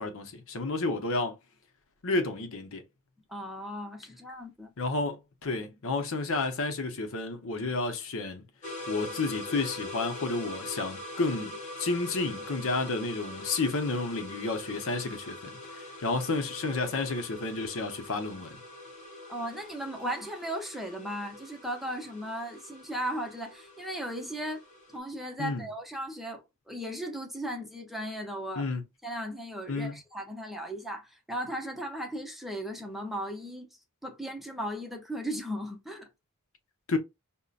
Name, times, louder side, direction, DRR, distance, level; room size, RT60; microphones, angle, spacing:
voice 1, 0.0-1.4 2.0-2.8 4.8-8.4 8.9-18.6 25.4-25.6 28.6-28.8 29.7-30.0 36.9-37.0, left 3 dB, 65° left, 0.8 m, -31 dB
voice 2, 3.3-4.7 19.3-24.6 24.9-28.7 29.0-33.7 34.0-36.1, equal, ahead, 0.6 m, -36 dB
sound 1, 8.6-25.0, left 1 dB, 35° left, 1.4 m, -43 dB
5.4 x 2.1 x 2.4 m
head